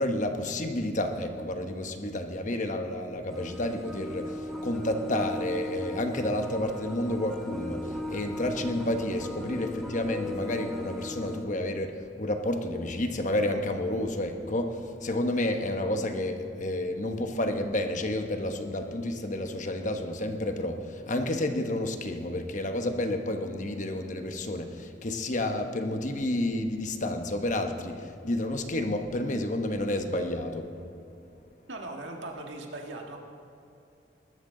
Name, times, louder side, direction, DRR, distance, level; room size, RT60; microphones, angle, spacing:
voice 1, 0.0-4.4 4.6-11.9 12.2-30.7, left 1 dB, 45° left, 5 dB, 1.1 m, -30 dB
sound 1, 3.3-11.4, left 1 dB, ahead, 1.3 m, -37 dB
voice 2, 31.7-33.2, right 2 dB, 90° right, 1 dB, 1.7 m, -39 dB
20.5 x 12.5 x 3.9 m, 2.8 s
head